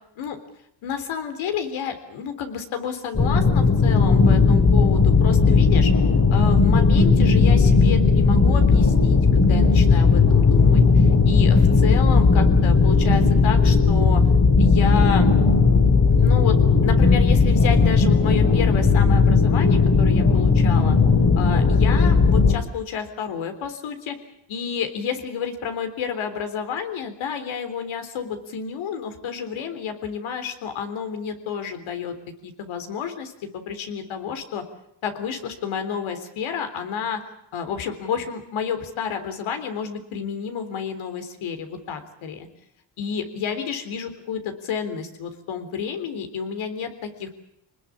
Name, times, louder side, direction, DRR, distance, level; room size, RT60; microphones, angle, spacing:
voice 1, 0.8-5.9 6.3-14.2 14.6-15.3 16.2-16.6 16.8-21.0 21.4-24.2 24.5-32.1 32.4-34.6 35.0-37.2 37.5-42.5 43.0-47.3, left 7 dB, 80° left, 8 dB, 3.8 m, -30 dB
sound 1, 3.1-22.5, left 4 dB, 35° left, 3.3 m, -16 dB
26.0 x 20.0 x 8.6 m, 0.73 s
cardioid pair, 85°, 47 cm